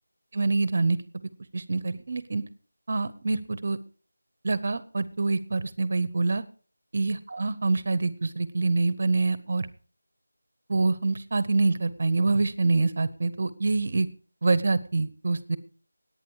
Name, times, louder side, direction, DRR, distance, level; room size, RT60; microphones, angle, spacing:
voice 1, 0.3-1.0 1.5-2.4 2.9-3.8 4.4-6.4 6.9-9.7 10.7-14.1 14.4-15.6, right 3 dB, 30° right, 16 dB, 0.9 m, -25 dB
18.0 x 9.1 x 4.8 m, 0.41 s
figure-of-eight pair, 180°, 0 cm